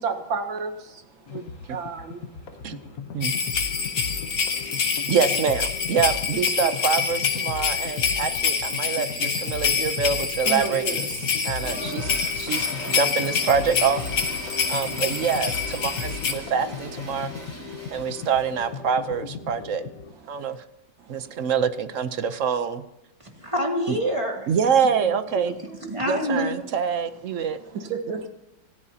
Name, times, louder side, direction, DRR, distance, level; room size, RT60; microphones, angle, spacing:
voice 1, 0.0-2.2 6.6-6.7 10.5-11.0 12.4-12.5 14.5-14.7 17.7-18.0 20.4-20.5 21.1-21.2 25.0-26.0 27.7-28.3, right 5 dB, 80° right, 6 dB, 2.2 m, -33 dB
sound 1, 1.3-20.1, left 5 dB, 55° left, 1.4 m, -36 dB
sound 2, 3.2-16.3, left 6 dB, 75° left, 2.3 m, -26 dB
voice 2, 5.1-14.0 14.7-17.5 17.9-19.8 20.3-20.6 21.1-22.8 23.9-24.0 24.5-25.5 26.1-27.6, right 6 dB, 60° right, 11 dB, 0.9 m, -25 dB
Toilet flush, 11.6-18.8, right 1 dB, 5° left, 5.1 m, -40 dB
voice 3, 23.4-24.5 25.5-25.6 25.9-26.5, equal, 15° right, 1 dB, 2.5 m, -26 dB
26.5 x 15.0 x 2.8 m, 0.92 s
omnidirectional pair, 2.1 m